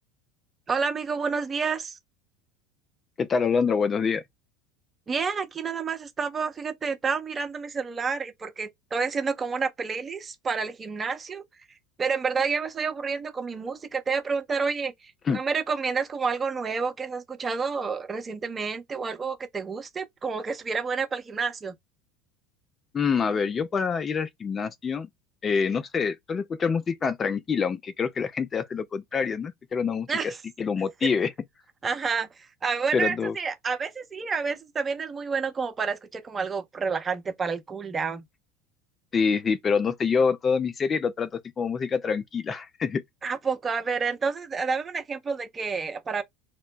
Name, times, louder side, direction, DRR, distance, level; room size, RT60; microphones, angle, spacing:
voice 1, 0.7-2.0 5.1-11.4 12.0-21.7 30.1-30.4 31.0-31.1 31.8-38.2 43.2-46.2, right 5 dB, 25° right, 0.7 m, -29 dB
voice 2, 3.2-4.2 15.3-15.4 22.9-25.1 25.4-30.3 30.6-31.3 32.9-33.4 39.1-41.3 41.6-43.0, left 5 dB, 30° left, 0.3 m, -26 dB
2.9 x 2.1 x 3.7 m
figure-of-eight pair, 75°, 0 cm